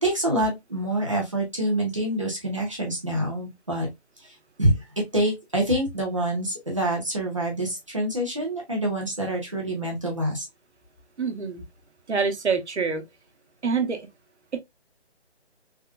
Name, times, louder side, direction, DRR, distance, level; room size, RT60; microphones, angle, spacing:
voice 1, 0.0-3.9 4.6-4.8 5.1-10.4, right 1 dB, 30° right, 0.9 m, -26 dB
voice 2, 11.2-11.6 12.1-13.0 13.6-14.1 14.5-14.6, right 5 dB, 85° right, 1.0 m, -26 dB
3.6 x 2.4 x 2.3 m
hypercardioid pair, 180°, 33 cm